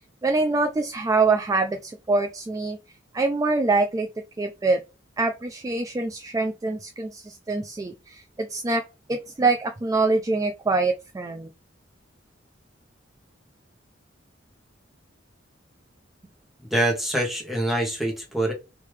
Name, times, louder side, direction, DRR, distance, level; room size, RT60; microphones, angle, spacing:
voice 1, 0.2-2.8 3.1-4.1 4.4-4.8 5.2-8.8 9.1-11.5, right 3 dB, 20° right, 0.3 m, -24 dB
voice 2, 16.7-18.5, right 1 dB, ahead, 1.0 m, -25 dB
3.2 x 2.7 x 3.2 m
head